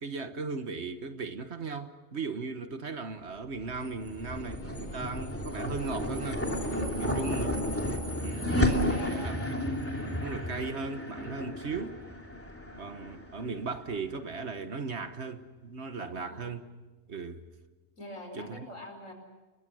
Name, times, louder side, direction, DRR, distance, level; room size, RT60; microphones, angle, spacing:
voice 1, 0.0-6.5 7.0-7.8 8.2-9.6 10.2-12.0 12.8-16.6 17.1-17.4 18.3-18.7, right 4 dB, 60° right, 1.6 m, -37 dB
sound 1, 3.6-14.1, left 1 dB, 10° left, 2.9 m, -32 dB
voice 2, 6.8-7.3 8.8-9.5 16.0-16.6 18.0-19.1, left 1 dB, 75° left, 5.2 m, -44 dB
29.5 x 22.0 x 6.4 m
omnidirectional pair, 1.3 m